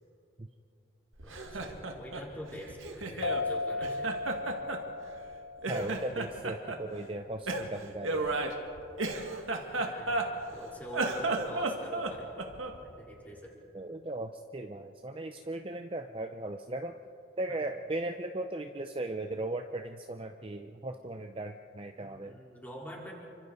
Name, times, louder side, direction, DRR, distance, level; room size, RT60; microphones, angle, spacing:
voice 1, 1.2-4.1 9.8-12.3 12.8-13.5 17.5-17.6 22.0-23.1, equal, 10° left, -4 dB, 4.3 m, -45 dB
Laughter, 1.2-3.5 3.8-5.3 5.6-6.8 7.5-10.6 10.9-12.8, right 2 dB, 80° right, 2.1 m, -34 dB
sound 1, 3.2-6.5, left 3 dB, 80° left, 0.6 m, -36 dB
voice 2, 5.7-8.4 13.7-16.9 17.4-22.4, right 2 dB, 25° right, 5 dB, 0.6 m, -37 dB
29.0 x 25.0 x 4.1 m, 2.6 s
head